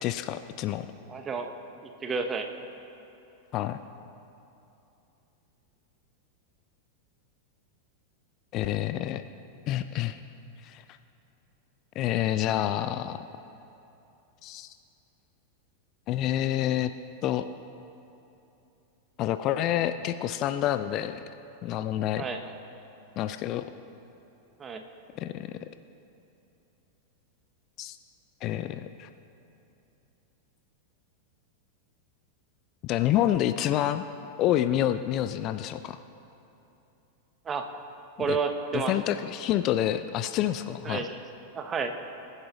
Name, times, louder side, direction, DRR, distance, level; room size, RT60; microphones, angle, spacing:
voice 1, 0.0-0.9 3.5-3.8 8.5-9.2 9.7-10.2 10.6-10.8 12.0-13.2 14.4-14.7 16.1-16.9 17.2-17.5 19.2-21.2 21.6-22.3 23.2-23.7 25.2-25.7 27.8-28.0 28.4-29.1 32.8-34.0 34.4-36.0 38.3-38.4 38.7-41.0, left 12 dB, 35° left, 11 dB, 0.4 m, -28 dB
voice 2, 1.1-1.5 2.0-2.5 22.2-22.5 24.6-24.8 37.5-37.7 38.2-38.9 40.8-41.2 41.5-41.9, right 5 dB, 20° right, 6 dB, 0.9 m, -30 dB
21.5 x 9.6 x 3.1 m, 2.9 s
figure-of-eight pair, 90°, 0 cm